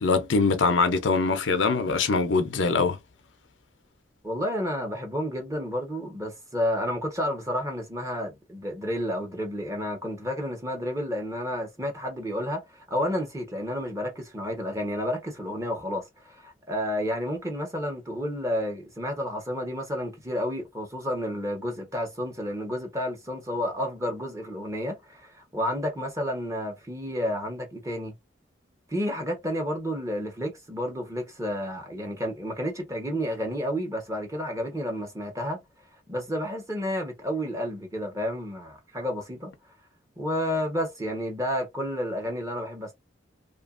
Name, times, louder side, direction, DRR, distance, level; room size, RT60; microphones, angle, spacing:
voice 1, 0.0-3.0, left 4 dB, 85° left, 0.6 m, -23 dB
voice 2, 4.2-28.1 28.9-35.6 36.1-39.5 40.2-42.9, equal, 15° right, 1.0 m, -31 dB
2.8 x 2.5 x 2.5 m
head